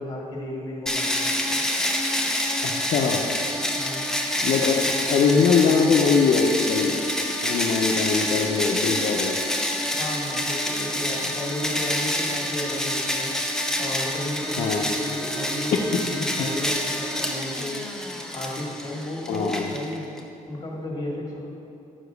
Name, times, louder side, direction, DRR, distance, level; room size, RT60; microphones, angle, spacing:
voice 1, 0.0-1.6 3.7-4.1 9.9-20.0 20.5-21.4, left 1 dB, 25° left, -2 dB, 1.7 m, -34 dB
sound 1, 0.9-20.2, left 1 dB, 5° left, 0.7 m, -27 dB
voice 2, 2.6-3.2 4.4-7.0 7.4-9.4 14.6-14.9 19.3-19.7, left 5 dB, 65° left, 0 dB, 0.6 m, -22 dB
5.8 x 4.8 x 6.5 m, 2.9 s
cardioid pair, 125°, 14 cm